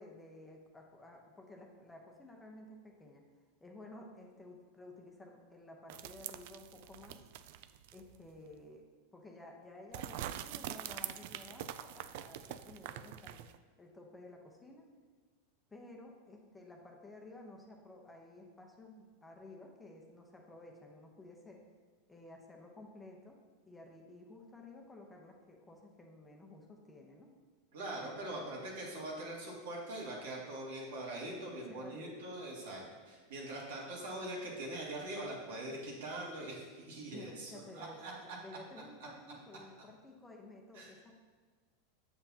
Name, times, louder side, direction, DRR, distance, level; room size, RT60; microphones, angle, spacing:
voice 1, 0.0-3.2 3.6-7.2 7.9-8.8 9.1-13.5 13.8-14.9 15.7-21.6 22.1-23.4 23.6-27.3 27.9-28.7 31.4-32.3 32.6-32.8 37.1-41.1, left 2 dB, 10° left, 1 dB, 0.8 m, -54 dB
sound 1, 5.9-8.2 8.5-8.6 9.9-13.6, right 12 dB, 60° right, 0.3 m, -44 dB
voice 2, 27.7-38.1 40.7-40.9, right 1 dB, 80° right, -3 dB, 2.1 m, -42 dB
7.8 x 6.9 x 2.8 m, 1.5 s
supercardioid pair, 140°, 0 cm